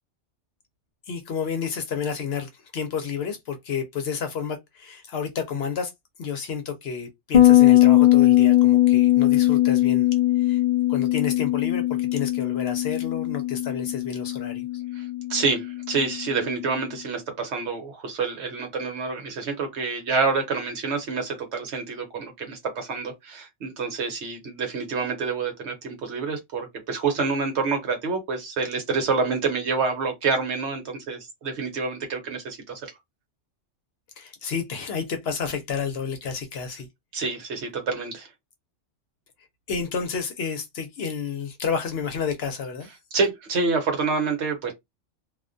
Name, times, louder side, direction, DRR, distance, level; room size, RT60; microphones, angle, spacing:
voice 1, 1.1-5.9 6.2-10.1 10.4-10.6 10.9-14.8 34.2-36.9 39.7-42.9, left 6 dB, 60° left, 0.8 m, -30 dB
Bass guitar, 7.3-16.7, left 15 dB, 85° left, 0.3 m, -20 dB
voice 2, 14.9-32.8 37.1-38.3 43.1-44.7, right 4 dB, 65° right, 1.1 m, -27 dB
2.3 x 2.2 x 2.5 m
omnidirectional pair, 1.3 m